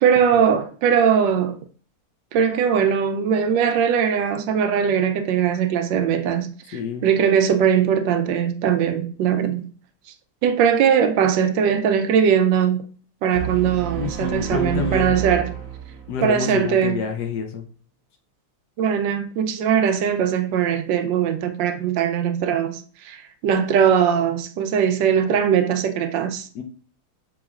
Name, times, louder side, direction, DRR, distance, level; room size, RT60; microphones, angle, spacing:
voice 1, 0.0-1.6 2.3-9.7 10.4-12.9 13.2-15.5 16.2-17.0 18.8-26.5, right 8 dB, 80° right, 1.2 m, -20 dB
voice 2, 6.7-7.1 14.0-15.1 16.1-17.6 26.5-26.6, left 6 dB, 70° left, 1.1 m, -28 dB
sound 1, 13.3-16.4, right 9 dB, 60° right, 1.0 m, -30 dB
6.9 x 3.1 x 2.4 m
omnidirectional pair, 2.0 m